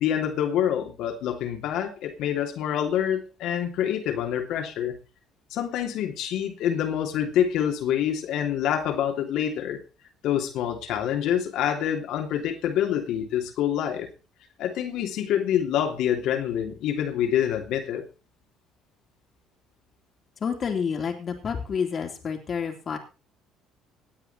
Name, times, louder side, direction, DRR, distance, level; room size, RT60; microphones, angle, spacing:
voice 1, 0.0-5.0 5.5-9.8 10.2-14.1 14.6-18.0, left 10 dB, 65° left, 4 dB, 2.9 m, -26 dB
voice 2, 20.4-23.0, left 6 dB, 45° left, 3 dB, 3.2 m, -29 dB
18.0 x 9.0 x 4.3 m, 0.32 s
hypercardioid pair, 60°, 0 cm